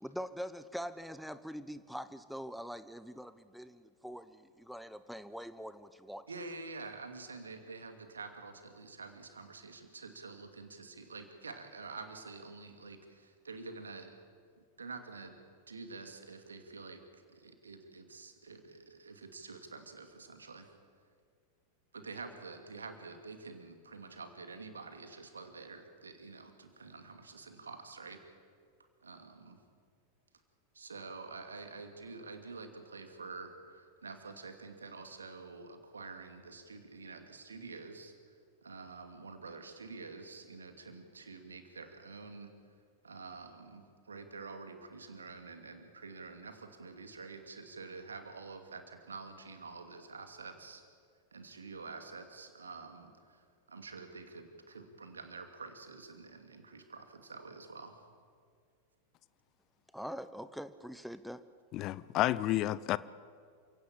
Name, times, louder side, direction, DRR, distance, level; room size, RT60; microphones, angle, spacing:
voice 1, 0.0-6.2 59.9-61.4, equal, ahead, 13 dB, 0.8 m, -43 dB
voice 2, 6.3-14.2 14.6-15.4 15.7-20.7 21.9-28.2 29.0-29.6 30.7-38.4 38.6-42.5 43.0-50.8 51.3-58.0, right 4 dB, 75° right, 6 dB, 2.5 m, -48 dB
voice 3, 61.7-63.0, left 15 dB, 35° left, 19 dB, 0.6 m, -30 dB
28.5 x 17.0 x 8.8 m, 2.1 s
figure-of-eight pair, 90°, 0 cm